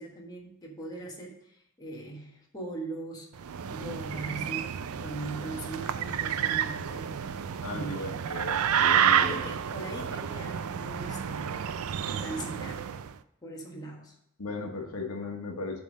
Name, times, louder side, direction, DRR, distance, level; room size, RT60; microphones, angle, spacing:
voice 1, 0.0-7.3 7.7-8.3 9.2-11.6 12.0-12.9 13.4-14.2, right 2 dB, 20° left, -2 dB, 1.4 m, -41 dB
sound 1, 3.4-13.1, right 8 dB, 70° right, 0.4 m, -30 dB
voice 2, 7.6-9.4 14.4-15.8, left 2 dB, 85° left, 3 dB, 1.1 m, -36 dB
7.5 x 3.6 x 6.2 m, 0.79 s
head